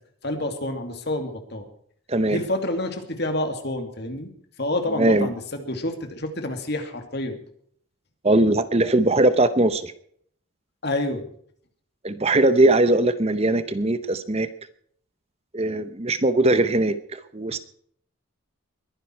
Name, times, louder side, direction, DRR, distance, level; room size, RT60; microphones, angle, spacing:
voice 1, 0.2-1.7 2.3-4.3 4.6-7.4 10.8-11.2, left 1 dB, 50° left, 6 dB, 2.6 m, -28 dB
voice 2, 2.1-2.4 5.0-5.3 8.2-9.9 12.0-14.5 15.5-17.6, right 2 dB, 30° right, 12 dB, 0.8 m, -20 dB
22.0 x 11.0 x 4.6 m, 0.62 s
head